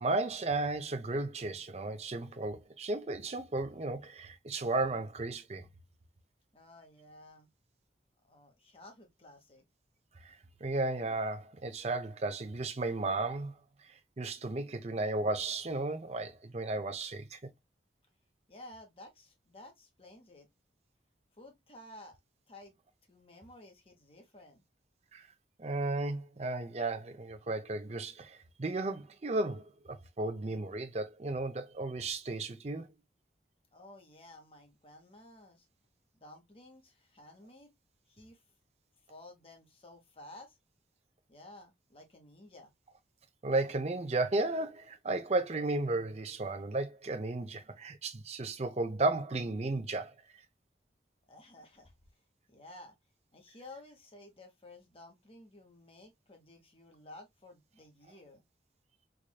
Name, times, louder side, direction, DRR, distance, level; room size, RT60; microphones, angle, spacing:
voice 1, 0.0-5.6 10.2-13.5 13.9-17.5 25.1-25.2 25.6-32.9 43.4-50.1, right 2 dB, 35° right, 0.6 m, -34 dB
voice 2, 6.5-7.5 8.2-9.6 18.5-20.5 21.4-22.2 22.5-22.7 23.1-24.6 33.7-35.7 36.2-37.7 38.1-38.4 39.1-40.6 41.3-42.7 51.3-51.9 52.5-52.9 53.3-58.4, left 1 dB, 35° left, 1.2 m, -54 dB
4.7 x 2.6 x 2.2 m
head